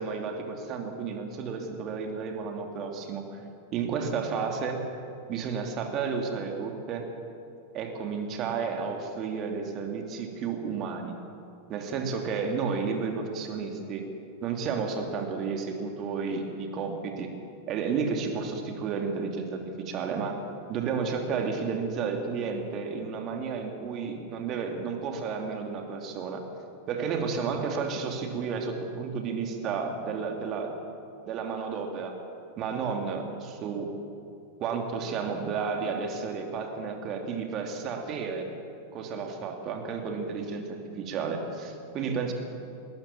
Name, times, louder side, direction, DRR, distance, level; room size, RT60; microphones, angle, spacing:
voice 1, 0.0-3.4 3.7-4.8 5.3-7.0 7.7-11.1 11.7-14.0 14.4-17.3 17.7-20.4 20.7-26.4 26.9-30.8 31.3-32.1 32.6-33.9 34.6-38.5 38.9-42.3, right 5 dB, 35° right, 3 dB, 3.0 m, -32 dB
20.5 x 20.0 x 7.5 m, 2.7 s
figure-of-eight pair, 90°, 0 cm